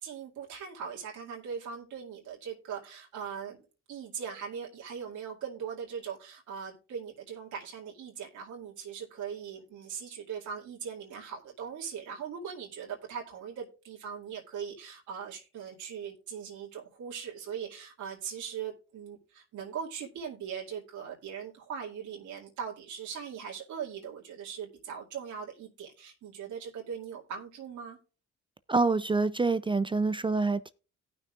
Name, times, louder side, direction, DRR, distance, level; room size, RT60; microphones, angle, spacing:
voice 1, 0.0-28.0, right 7 dB, 80° right, 2.3 m, -40 dB
voice 2, 28.7-30.7, right 3 dB, 15° right, 0.4 m, -26 dB
17.5 x 6.2 x 2.4 m
cardioid pair, 90°, 30 cm